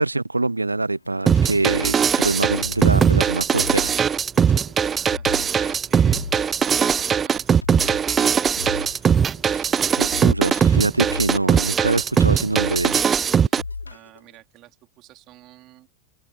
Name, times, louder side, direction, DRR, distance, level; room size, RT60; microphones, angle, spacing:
voice 1, 0.0-3.9 9.5-13.1, right 2 dB, 80° right, 0.5 m, -24 dB
sound 1, 0.9-14.2, left 4 dB, 80° left, 3.5 m, -37 dB
sound 2, 1.3-13.6, right 7 dB, 20° right, 0.4 m, -20 dB
voice 2, 4.8-6.2 6.6-9.0 13.4-15.9, right 17 dB, 35° right, 3.3 m, -49 dB
figure-of-eight pair, 90°, 0 cm